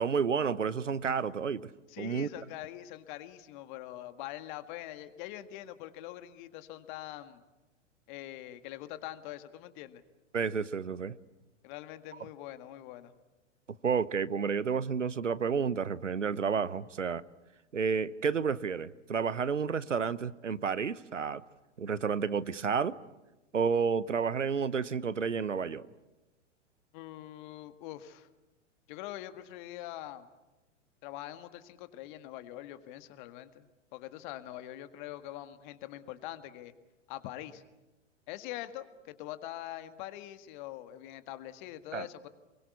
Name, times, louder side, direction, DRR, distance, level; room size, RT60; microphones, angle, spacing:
voice 1, 0.0-1.7 2.0-2.3 10.3-11.2 13.8-17.2 17.7-21.4 21.8-23.0 23.5-25.9 41.9-42.1, right 6 dB, 80° right, 1.0 m, -30 dB
voice 2, 1.9-7.4 8.1-10.0 11.6-13.1 26.9-28.3 28.9-30.3 31.0-36.7 37.1-37.6 38.3-42.3, left 14 dB, 40° left, 1.8 m, -44 dB
28.5 x 22.5 x 8.4 m
figure-of-eight pair, 100°, 37 cm